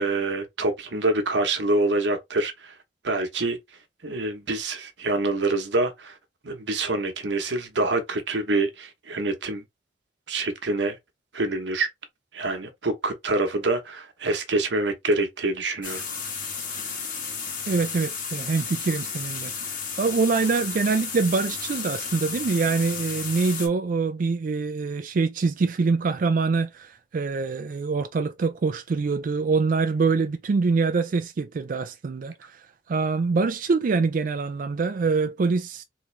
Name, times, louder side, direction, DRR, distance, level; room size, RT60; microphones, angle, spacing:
voice 1, 0.0-2.8 3.0-3.6 4.0-6.2 6.4-9.6 10.3-11.0 11.3-11.9 12.3-16.0, right 2 dB, 85° right, 1.0 m, -26 dB
sound 1, 15.8-23.7, left 5 dB, 50° left, 1.4 m, -33 dB
voice 2, 17.7-35.8, right 4 dB, 50° right, 0.4 m, -25 dB
3.7 x 3.0 x 3.2 m
head